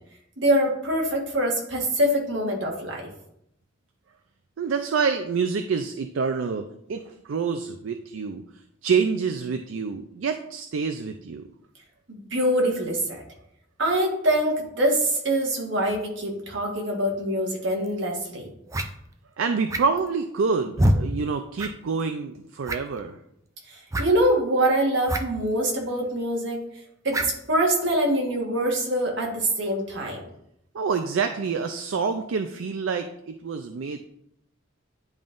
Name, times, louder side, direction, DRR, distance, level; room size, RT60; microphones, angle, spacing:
voice 1, 0.4-3.1 12.1-13.2 13.8-18.5 23.7-26.6 27.0-30.2, right 1 dB, 65° right, 0 dB, 1.5 m, -24 dB
voice 2, 4.6-8.4 8.8-11.5 19.4-23.2 30.7-34.0, right 5 dB, 80° right, 7 dB, 0.4 m, -27 dB
sound 1, 17.8-17.9 18.7-18.9 19.7-20.1 20.8-21.0 21.6-21.7 22.0-22.1 22.6-23.0 23.9-24.1 25.1-25.2 25.5-25.6 27.1-27.4, right 1 dB, 15° right, 0.4 m, -24 dB
10.5 x 3.6 x 2.5 m, 0.76 s
head